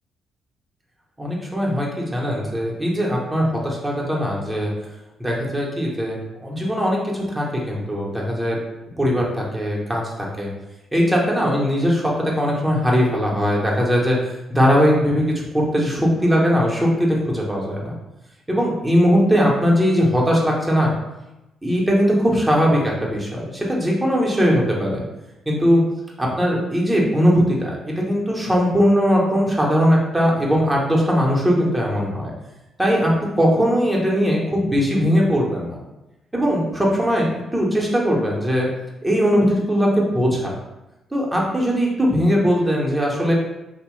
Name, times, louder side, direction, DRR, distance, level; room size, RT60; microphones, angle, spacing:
voice 1, 1.2-4.7 5.2-8.6 9.0-10.5 10.9-17.9 18.5-20.9 21.6-25.0 25.5-25.8 26.2-32.3 32.8-33.1 33.4-35.8 36.3-38.7 39.0-40.5 41.1-43.3, equal, 10° right, -3 dB, 0.9 m, -20 dB
2.9 x 2.1 x 3.0 m, 0.96 s
supercardioid pair, 65°, 0 cm